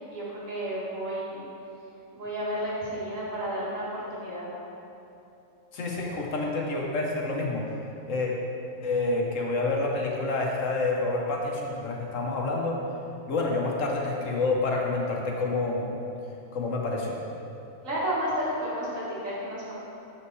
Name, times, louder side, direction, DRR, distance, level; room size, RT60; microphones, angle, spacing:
voice 1, 0.1-1.4 2.1-4.5 17.8-19.7, equal, 75° right, -7 dB, 2.4 m, -32 dB
voice 2, 5.7-7.7 8.1-8.3 8.8-12.8 13.3-15.9 16.5-17.2, left 3 dB, 70° left, -1 dB, 1.4 m, -28 dB
7.4 x 6.0 x 4.7 m, 2.9 s
omnidirectional pair, 1.4 m